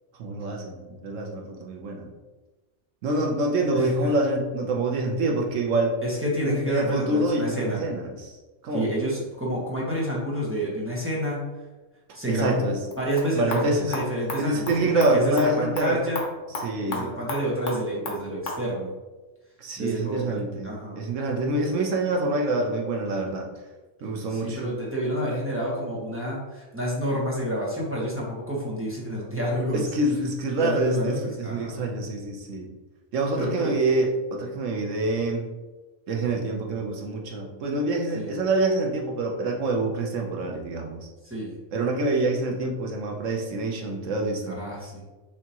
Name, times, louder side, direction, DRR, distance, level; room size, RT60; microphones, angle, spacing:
voice 1, 0.2-2.1 3.0-6.0 6.5-8.3 8.6-8.9 12.3-12.8 13.3-13.9 14.4-16.0 16.6-17.1 19.6-23.5 24.0-24.6 29.7-32.7 33.1-35.4 36.1-41.0 41.7-44.5, right 2 dB, 80° right, 1 dB, 1.2 m, -26 dB
voice 2, 3.7-4.1 6.0-7.8 8.7-11.4 12.1-12.6 13.0-16.2 16.9-18.9 19.8-21.0 24.3-29.9 30.6-31.8 33.3-33.7 38.1-38.3 41.2-41.6 44.5-45.0, equal, 10° right, -6 dB, 1.1 m, -29 dB
sound 1, 12.8-18.6, left 2 dB, 80° left, 1.3 m, -36 dB
6.4 x 2.8 x 2.9 m, 1.2 s
omnidirectional pair, 1.3 m